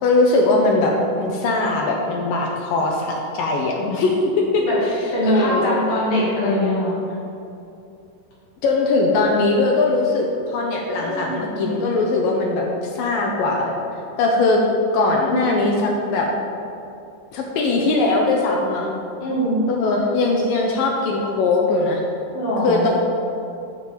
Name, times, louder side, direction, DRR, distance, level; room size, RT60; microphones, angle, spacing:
voice 1, 0.0-4.6 5.2-5.7 8.6-12.7 12.9-13.7 14.2-14.6 14.9-16.3 17.3-18.9 19.7-22.0 22.6-22.9, left 3 dB, 80° left, 0 dB, 2.0 m, -20 dB
voice 2, 5.1-6.9 11.0-11.7 15.2-15.7 19.2-19.6 22.3-22.9, equal, 60° left, -7 dB, 3.9 m, -23 dB
9.3 x 5.0 x 7.7 m, 2.7 s
omnidirectional pair, 5.1 m